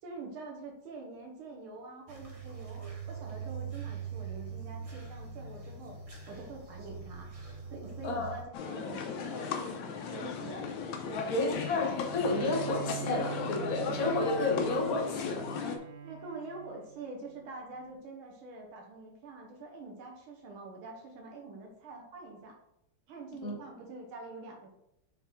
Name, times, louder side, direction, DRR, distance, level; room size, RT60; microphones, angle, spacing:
voice 1, 0.0-6.0 6.3-7.3 7.7-10.7 11.1-11.7 16.0-22.6 23.1-24.7, right 3 dB, 85° right, 0 dB, 1.9 m, -45 dB
sound 1, 2.1-8.4, right 6 dB, 40° right, 0.5 m, -42 dB
voice 2, 8.0-8.3 11.3-15.7 23.4-23.6, left 3 dB, 45° left, 2 dB, 1.5 m, -31 dB
sound 2, 8.5-15.8, left 5 dB, 70° left, 1.4 m, -36 dB
Bowed string instrument, 11.9-17.4, right 10 dB, 65° right, 0.9 m, -43 dB
5.8 x 4.1 x 4.6 m, 0.78 s
omnidirectional pair, 2.3 m